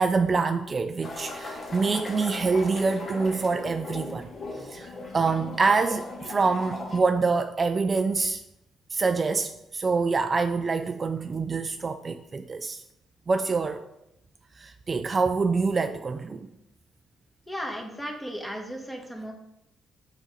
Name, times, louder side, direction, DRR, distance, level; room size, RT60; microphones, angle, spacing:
voice 1, 0.0-4.3 4.7-4.9 5.1-8.4 8.9-12.8 13.3-13.8 14.6-16.5, right 4 dB, 35° right, 8 dB, 0.4 m, -26 dB
sound 1, 1.0-7.0, left 2 dB, 40° left, 1.5 m, -38 dB
voice 2, 17.5-19.3, equal, 10° left, 1 dB, 1.4 m, -35 dB
6.1 x 5.1 x 4.1 m, 0.83 s
cardioid pair, 90°, 0 cm